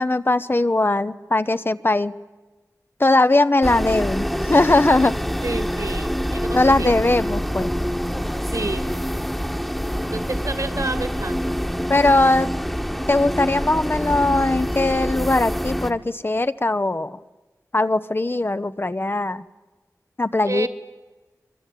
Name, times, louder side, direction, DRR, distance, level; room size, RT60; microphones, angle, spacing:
voice 1, 0.0-2.1 3.0-5.2 6.5-7.7 11.9-12.5 13.1-17.2 17.7-19.4 20.2-20.7, left 2 dB, 40° left, 12 dB, 0.9 m, -20 dB
sound 1, 3.6-15.9, equal, ahead, 1.4 m, -26 dB
voice 2, 5.4-6.9 8.5-8.9 9.9-11.6 20.4-20.7, right 3 dB, 60° right, 11 dB, 2.4 m, -30 dB
24.0 x 23.5 x 9.3 m, 1.2 s
wide cardioid pair, 55°, 6 cm